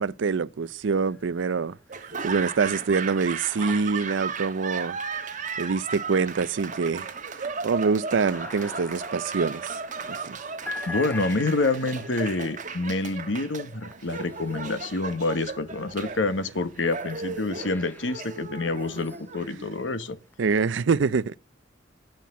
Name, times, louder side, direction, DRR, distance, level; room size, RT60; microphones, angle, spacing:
voice 1, 0.0-1.8 2.2-5.0 5.6-7.1 7.6-9.8 10.3-10.4 20.4-21.4, right 5 dB, 80° right, 0.5 m, -25 dB
sound 1, 1.0-1.7 2.1-15.2 15.9-20.4, left 2 dB, 10° left, 0.7 m, -45 dB
Laughter / Applause, 1.9-20.0, right 5 dB, 45° right, 1.3 m, -36 dB
voice 2, 10.9-20.2, left 2 dB, 80° left, 1.2 m, -27 dB
10.5 x 5.8 x 8.3 m
head